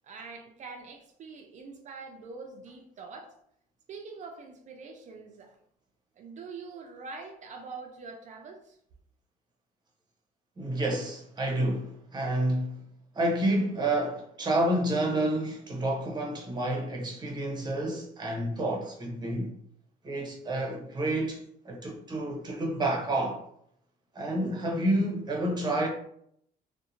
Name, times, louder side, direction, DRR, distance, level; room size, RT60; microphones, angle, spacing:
voice 1, 0.0-3.3 3.9-5.6 6.2-8.8, right 4 dB, 45° right, 0.4 m, -44 dB
voice 2, 10.6-12.8 13.1-19.5 20.0-23.4 24.1-25.9, right 1 dB, 25° right, 0.8 m, -29 dB
2.7 x 2.1 x 2.6 m
cardioid pair, 110°, 17 cm